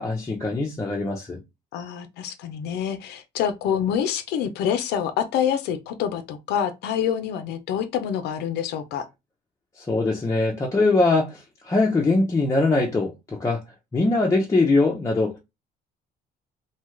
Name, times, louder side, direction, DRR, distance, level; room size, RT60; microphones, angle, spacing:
voice 1, 0.0-1.4 9.8-13.6 13.9-15.4, left 3 dB, 20° left, 0.6 m, -22 dB
voice 2, 1.7-9.1, left 8 dB, 75° left, 0.5 m, -26 dB
2.7 x 2.2 x 3.1 m
cardioid pair, 110°, 17 cm